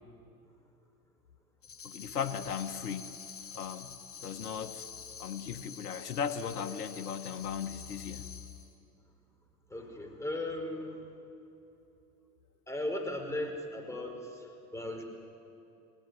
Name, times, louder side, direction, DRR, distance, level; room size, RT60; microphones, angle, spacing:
Tambourine, 1.6-8.7, left 6 dB, 30° left, 3.0 m, -47 dB
voice 1, 1.8-3.2 3.5-3.9 4.2-4.9 5.2-8.3, left 7 dB, 80° left, 7 dB, 1.5 m, -37 dB
voice 2, 9.7-11.0 12.7-15.0, left 1 dB, 5° left, 2 dB, 5.0 m, -37 dB
29.0 x 19.5 x 9.8 m, 2.8 s
hypercardioid pair, 95°, 45 cm